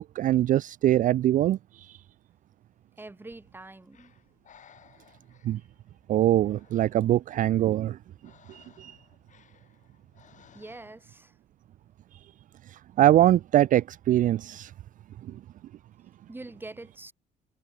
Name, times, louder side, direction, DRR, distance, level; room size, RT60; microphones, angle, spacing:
voice 1, 0.0-1.9 5.4-5.6 6.1-8.0 8.5-9.0 12.7-14.7, right 13 dB, 50° right, 0.4 m, -23 dB
voice 2, 3.0-4.1 10.5-11.3 16.3-17.1, right 2 dB, 10° right, 6.0 m, -44 dB
Breathing, 3.3-11.2, left 8 dB, 45° left, 6.0 m, -60 dB
cardioid pair, 110°, 17 cm